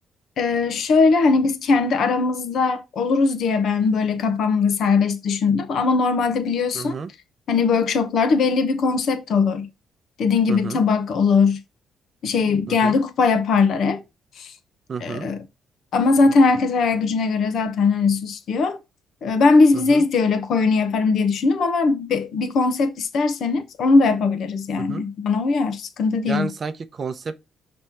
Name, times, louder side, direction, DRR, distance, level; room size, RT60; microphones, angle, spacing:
voice 1, 0.4-7.0 7.5-9.7 10.2-11.6 12.2-14.0 14.4-14.5 15.0-15.4 15.9-18.8 19.2-26.5, left 4 dB, 65° left, 0.9 m, -20 dB
voice 2, 6.7-7.1 10.5-10.8 12.7-13.0 14.9-15.3 19.7-20.0 24.8-25.0 26.3-27.4, right 5 dB, 45° right, 0.6 m, -31 dB
6.1 x 3.2 x 5.6 m
cardioid pair, 90°, 0 cm